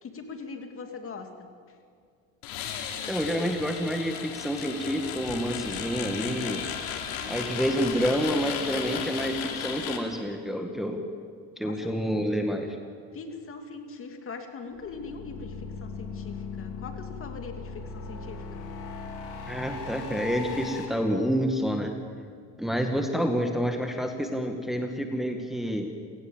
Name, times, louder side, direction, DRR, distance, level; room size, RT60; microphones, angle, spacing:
voice 1, 0.0-1.5 7.2-7.6 11.6-11.8 13.1-18.6, left 4 dB, 40° left, 5 dB, 2.8 m, -41 dB
sound 1, 2.4-10.0, left 8 dB, 75° left, 3.2 m, -35 dB
voice 2, 3.1-6.6 7.3-11.0 11.6-12.8 19.5-21.9 22.6-25.9, equal, ahead, 3 dB, 1.9 m, -28 dB
sound 2, 14.7-20.8, left 4 dB, 60° left, 4.3 m, -38 dB
28.5 x 18.0 x 7.4 m, 2.2 s
cardioid pair, 115°, 35 cm